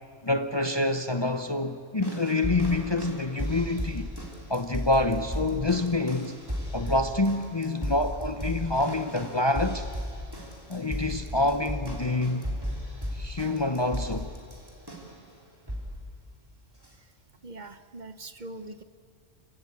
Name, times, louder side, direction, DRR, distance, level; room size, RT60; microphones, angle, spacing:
voice 1, 0.2-4.1 4.5-6.4 6.7-9.9 10.7-12.4 13.1-14.3, left 2 dB, 30° left, 0.7 m, -27 dB
sound 1, 2.0-15.2 15.7-16.0 16.8-16.9, equal, 20° right, 3.0 m, -35 dB
voice 2, 17.4-18.8, right 2 dB, 45° right, 1.0 m, -42 dB
30.0 x 16.5 x 8.6 m
omnidirectional pair, 1.1 m